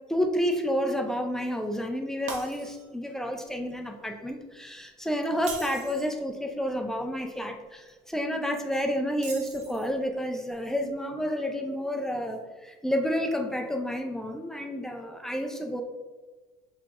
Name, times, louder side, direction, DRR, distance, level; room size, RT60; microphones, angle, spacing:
voice 1, 0.1-15.8, equal, 5° left, 4 dB, 0.4 m, -30 dB
Shatter, 2.3-3.1 3.5-3.7 5.3-6.2 9.1-10.0, right 4 dB, 60° right, 0.9 m, -41 dB
5.4 x 2.9 x 2.5 m, 1.3 s
cardioid pair, 115°, 14 cm